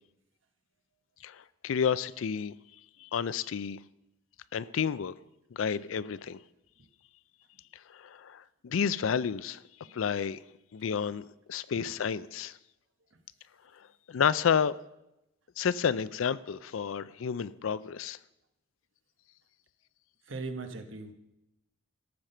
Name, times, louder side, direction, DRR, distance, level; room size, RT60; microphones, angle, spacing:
voice 1, 1.2-2.5 3.0-3.8 4.5-5.1 5.5-6.4 7.9-9.6 9.9-10.4 10.7-12.6 14.1-14.8 15.6-18.2, left 7 dB, 85° left, 17 dB, 0.4 m, -30 dB
voice 2, 20.3-21.1, right 3 dB, 80° right, 7 dB, 1.1 m, -38 dB
14.0 x 5.9 x 6.6 m, 0.88 s
head